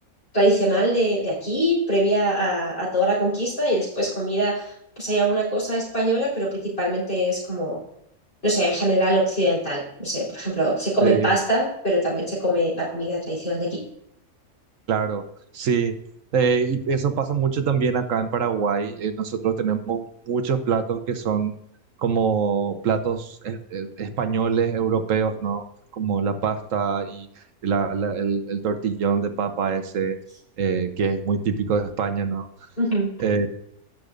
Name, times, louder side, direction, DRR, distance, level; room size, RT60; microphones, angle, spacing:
voice 1, 0.3-7.8 8.4-13.8 32.8-33.2, right 1 dB, 40° left, -8 dB, 4.4 m, -23 dB
voice 2, 11.0-11.3 14.9-15.2 15.5-15.9 16.3-21.6 22.0-25.6 25.9-27.3 27.6-30.2 30.6-32.5 33.2-33.5, right 6 dB, 65° right, 9 dB, 1.2 m, -24 dB
16.5 x 6.5 x 2.5 m, 0.74 s
omnidirectional pair, 1.5 m